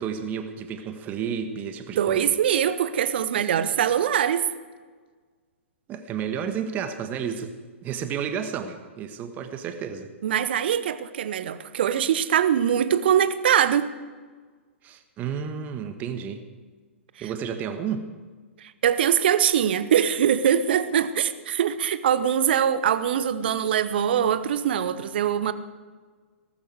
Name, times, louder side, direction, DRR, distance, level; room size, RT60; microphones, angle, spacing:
voice 1, 0.0-2.3 5.9-7.6 7.8-10.1 14.8-16.4 17.2-18.1, right 7 dB, 25° right, 8 dB, 1.4 m, -31 dB
voice 2, 2.0-4.5 10.2-13.9 17.2-17.3 18.6-25.5, right 9 dB, 50° right, 14 dB, 0.9 m, -23 dB
18.0 x 14.5 x 4.8 m, 1.5 s
figure-of-eight pair, 115°, 7 cm